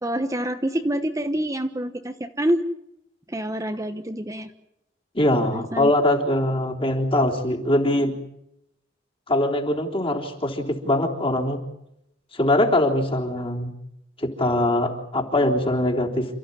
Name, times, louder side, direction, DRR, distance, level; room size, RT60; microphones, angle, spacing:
voice 1, 0.0-2.6 3.3-4.5 5.4-5.9, right 1 dB, 20° right, 6 dB, 1.1 m, -27 dB
voice 2, 5.1-8.1 9.3-11.6 12.3-13.7 14.2-16.3, left 1 dB, 30° left, 0 dB, 3.7 m, -22 dB
29.0 x 14.5 x 9.8 m, 0.83 s
head